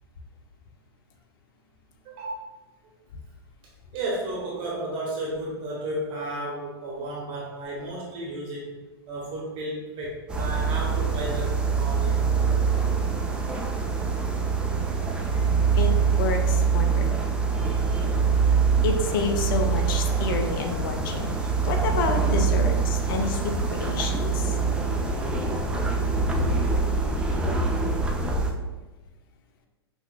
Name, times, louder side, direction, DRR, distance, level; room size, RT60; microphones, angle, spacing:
voice 1, 2.0-2.4 3.9-8.7 9.1-12.3, right 1 dB, 40° right, -3 dB, 0.8 m, -33 dB
sound 1, 10.3-28.5, right 5 dB, 5° right, 0.4 m, -24 dB
voice 2, 16.2-17.2 18.8-24.6, left 4 dB, 55° left, 5 dB, 0.5 m, -29 dB
5.7 x 2.1 x 2.2 m, 1.2 s
hypercardioid pair, 100°, 14 cm